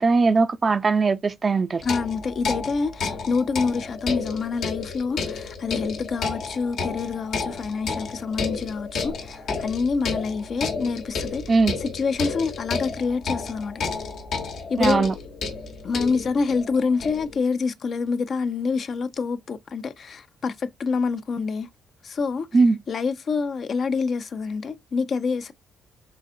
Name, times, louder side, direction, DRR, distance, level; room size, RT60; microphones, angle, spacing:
voice 1, 0.0-1.8 11.5-11.8 14.8-15.1 22.5-22.8, right 4 dB, 35° right, 0.4 m, -20 dB
sound 1, 1.8-17.4, left 4 dB, 70° left, 1.1 m, -31 dB
voice 2, 1.8-13.8 14.7-15.1 15.8-21.7 22.0-22.5 22.9-25.5, left 4 dB, 50° left, 0.5 m, -27 dB
3.9 x 3.3 x 2.6 m
cardioid pair, 90°, 0 cm